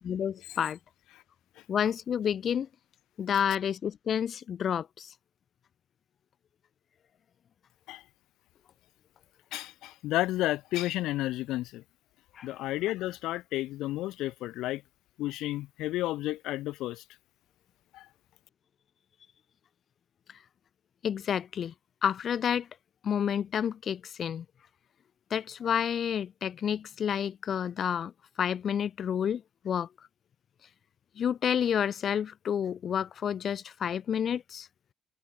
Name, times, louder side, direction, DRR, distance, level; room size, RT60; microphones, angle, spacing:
voice 1, 0.0-0.8 1.7-2.7 3.2-5.1 12.3-12.5 20.3-20.4 21.0-21.7 22.0-22.7 23.0-24.4 25.3-28.1 28.4-29.9 31.2-34.7, left 8 dB, 35° left, 0.8 m, -30 dB
voice 2, 9.5-11.8 12.4-14.8 15.2-17.0 17.9-18.1, left 16 dB, 70° left, 1.2 m, -32 dB
cardioid pair, 160°, 0 cm